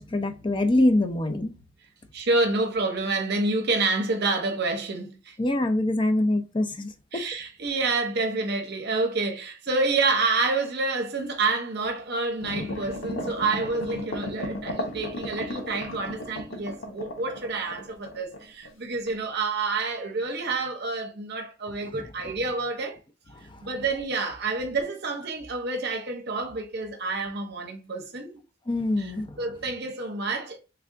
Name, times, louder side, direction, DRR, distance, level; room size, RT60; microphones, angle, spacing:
voice 1, 0.0-1.5 5.4-7.2 21.9-22.0 23.5-23.6 28.7-29.3, left 1 dB, 25° left, 0.5 m, -24 dB
voice 2, 2.1-5.4 7.1-23.0 23.6-28.4 29.0-29.1 29.4-30.6, right 3 dB, 55° right, 0.7 m, -28 dB
sound 1, 12.4-18.7 19.1-19.2, left 1 dB, 85° left, 1.0 m, -35 dB
3.4 x 2.4 x 3.6 m
head